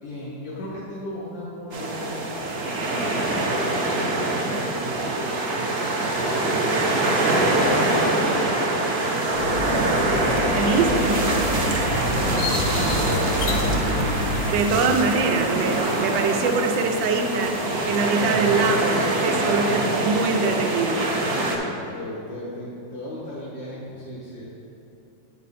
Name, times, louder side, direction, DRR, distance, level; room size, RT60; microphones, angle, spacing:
voice 1, 0.0-7.0 7.4-11.2 11.8-14.0 21.3-24.4, left 1 dB, 85° left, -7 dB, 2.0 m, -37 dB
sound 1, 1.7-21.6, right 2 dB, 50° right, 0.7 m, -24 dB
sound 2, 9.3-14.5, left 2 dB, 70° left, 1.1 m, -28 dB
voice 2, 10.6-11.1 14.5-17.5 17.8-21.0, right 4 dB, 85° right, 4 dB, 1.3 m, -23 dB
8.5 x 5.4 x 4.1 m, 2.7 s
omnidirectional pair, 2.0 m